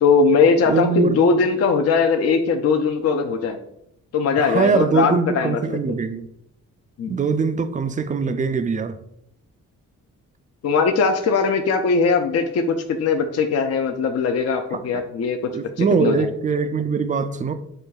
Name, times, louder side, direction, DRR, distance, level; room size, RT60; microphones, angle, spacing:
voice 1, 0.0-3.6 4.1-5.8 7.0-7.2 10.6-15.4 15.8-16.3, left 5 dB, 45° left, 0.5 m, -20 dB
voice 2, 0.7-1.2 4.4-6.3 7.1-9.0 14.7-14.8 15.5-17.5, right 5 dB, 25° right, 0.3 m, -22 dB
6.3 x 2.2 x 2.3 m
supercardioid pair, 50°, 35 cm